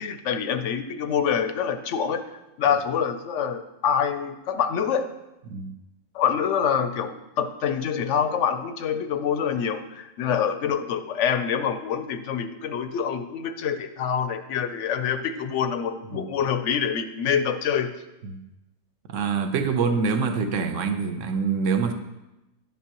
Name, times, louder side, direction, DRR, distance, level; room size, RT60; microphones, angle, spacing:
voice 1, 0.0-5.1 6.1-17.9, left 7 dB, 65° left, 9 dB, 0.8 m, -26 dB
voice 2, 19.1-21.9, right 5 dB, 60° right, 7 dB, 1.0 m, -25 dB
11.5 x 7.4 x 3.0 m, 0.97 s
omnidirectional pair, 1.6 m